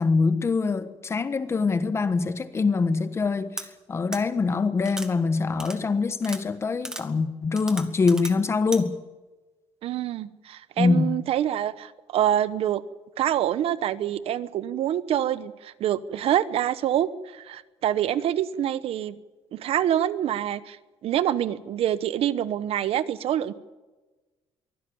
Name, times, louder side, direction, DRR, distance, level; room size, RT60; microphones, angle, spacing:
voice 1, 0.0-8.9 10.8-11.2, left 4 dB, 25° left, 1.3 m, -24 dB
sound 1, 3.6-3.7 4.1-4.2 4.9-5.1 5.6-5.8 6.2-6.4 6.8-7.0 7.6-8.3 8.7-8.8, right 1 dB, 5° right, 1.6 m, -35 dB
voice 2, 9.8-12.8 13.2-19.2 19.5-20.8 21.0-23.5, right 11 dB, 65° right, 1.0 m, -26 dB
23.5 x 16.0 x 8.7 m
cardioid pair, 165°, 11 cm